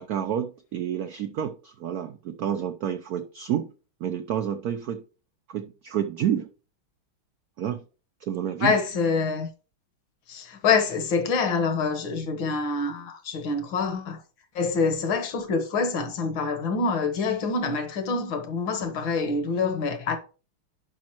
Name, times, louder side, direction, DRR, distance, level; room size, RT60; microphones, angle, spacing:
voice 1, 0.0-3.7 4.0-5.0 5.5-6.5 7.6-7.8 8.2-8.7, right 9 dB, 90° right, 0.8 m, -29 dB
voice 2, 8.6-9.5 10.3-14.2 14.6-20.2, left 4 dB, 65° left, 2.0 m, -26 dB
10.5 x 5.3 x 3.0 m
omnidirectional pair, 2.3 m